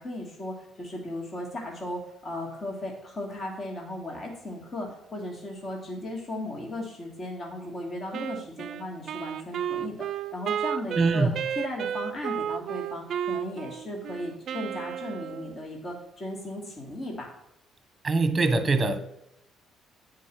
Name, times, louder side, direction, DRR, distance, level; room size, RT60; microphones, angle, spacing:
voice 1, 0.0-17.3, left 1 dB, 40° left, 0 dB, 2.2 m, -36 dB
Wind instrument woodwind instrument, 8.1-15.6, right 9 dB, 60° right, 0.4 m, -33 dB
voice 2, 11.0-11.3 18.0-19.0, right 3 dB, 25° right, 10 dB, 1.1 m, -23 dB
8.4 x 4.9 x 6.2 m, 0.82 s
supercardioid pair, 80°, 0 cm